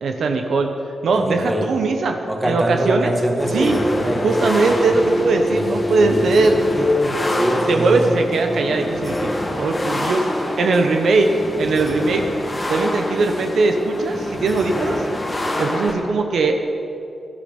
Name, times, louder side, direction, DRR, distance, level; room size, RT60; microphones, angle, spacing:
voice 1, 0.0-0.7 1.0-2.2 2.4-3.1 3.5-3.8 4.2-6.6 7.7-10.3 10.6-11.3 11.6-12.3 12.7-15.0 15.6-16.6, right 3 dB, 65° right, 4 dB, 1.0 m, -19 dB
voice 2, 1.1-1.7 2.3-4.9 5.5-8.3, equal, 10° right, 1 dB, 1.8 m, -24 dB
sound 1, 3.4-15.9, left 1 dB, 15° left, 1.7 m, -25 dB
17.5 x 12.0 x 5.3 m, 2.8 s
wide cardioid pair, 160°, 0 cm